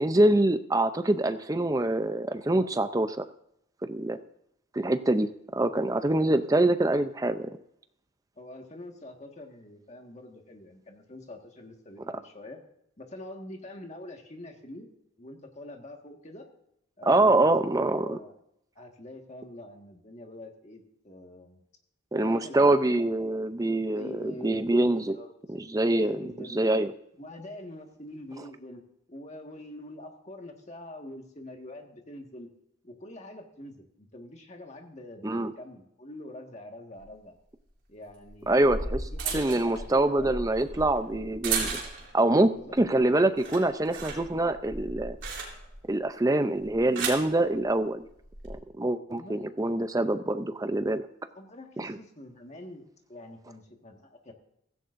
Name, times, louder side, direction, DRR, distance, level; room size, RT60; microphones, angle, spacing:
voice 1, 0.0-3.2 3.9-4.2 4.7-7.5 17.1-18.2 22.1-25.2 25.5-26.2 26.5-26.9 35.2-35.5 38.5-39.0 39.3-41.8 42.1-42.5 42.8-45.2 45.9-48.0 48.5-51.1 51.8-52.0, right 2 dB, 15° right, 10 dB, 0.5 m, -25 dB
voice 2, 8.3-12.6 13.0-14.9 15.2-16.5 17.0-18.3 18.7-21.6 22.1-22.7 23.8-25.3 25.9-26.8 27.2-28.8 29.1-32.5 32.8-37.4 37.9-40.4 42.4-43.2 49.1-49.9 51.3-54.3, left 1 dB, 35° left, 3 dB, 1.6 m, -45 dB
sound 1, 37.0-37.1 38.3-42.2 42.6-43.0 43.3-45.9 46.6-47.3 48.2-48.5, right 4 dB, 65° right, 3.5 m, -35 dB
16.5 x 15.0 x 2.6 m, 0.75 s
head